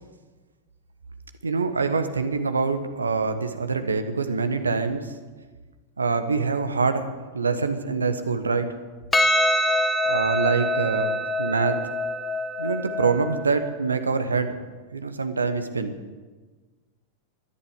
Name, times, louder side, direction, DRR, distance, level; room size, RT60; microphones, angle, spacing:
voice 1, 1.4-5.1 6.0-7.1 7.3-8.7 10.1-11.1 11.4-11.8 12.6-14.6 14.9-16.0, right 4 dB, 75° right, 9 dB, 1.3 m, -25 dB
Percussion, 9.1-13.8, left 1 dB, 10° left, 1.0 m, -25 dB
13.0 x 11.0 x 8.3 m, 1.3 s
figure-of-eight pair, 90°, 0 cm